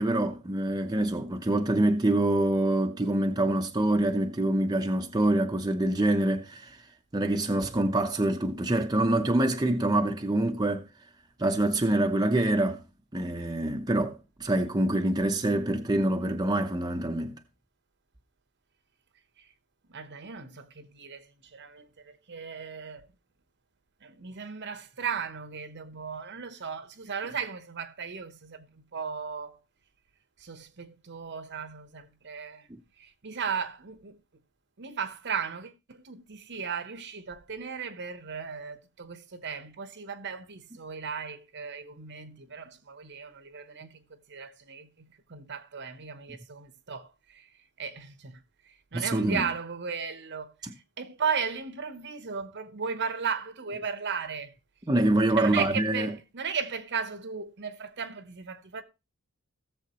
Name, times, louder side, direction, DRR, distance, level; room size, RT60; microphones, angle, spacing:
voice 1, 0.0-6.8 7.1-10.9 11.4-12.8 13.1-17.4 32.7-32.8 48.9-49.5 50.6-50.7 54.9-56.1, right 1 dB, 20° right, 0.7 m, -26 dB
voice 2, 19.9-23.1 24.0-29.6 30.4-32.7 33.0-34.2 34.8-47.5 47.8-50.5 51.0-54.5 55.4-58.8, right 6 dB, 50° right, 0.9 m, -36 dB
17.0 x 7.1 x 3.0 m
head